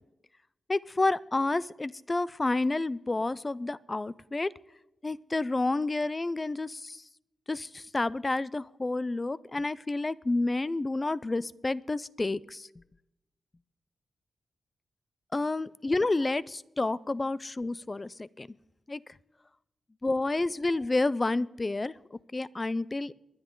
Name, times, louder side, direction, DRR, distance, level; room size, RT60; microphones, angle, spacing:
voice 1, 0.7-4.5 5.0-7.0 7.5-12.7 15.3-18.5 18.9-19.0 20.0-23.1, left 2 dB, 20° left, 20 dB, 0.4 m, -30 dB
22.5 x 10.5 x 3.8 m, 0.90 s
wide cardioid pair, 145°, 0 cm